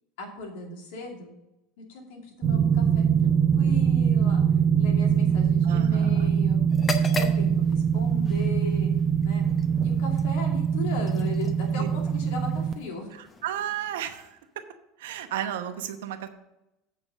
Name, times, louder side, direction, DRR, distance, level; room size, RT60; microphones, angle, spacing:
voice 1, 0.2-1.4 1.8-4.4 4.8-6.6 7.1-8.9 9.2-9.5 9.8-13.1, left 2 dB, 80° left, 1 dB, 2.4 m, -37 dB
sound 1, 2.4-12.7, right 7 dB, 30° right, 0.8 m, -23 dB
voice 2, 5.6-6.3 11.8-11.9 13.4-14.4 15.0-16.3, right 10 dB, 85° right, 8 dB, 0.9 m, -33 dB
sound 2, 6.7-14.5, left 2 dB, 25° left, 0.9 m, -40 dB
8.4 x 4.7 x 6.4 m, 0.91 s
supercardioid pair, 110°, 0 cm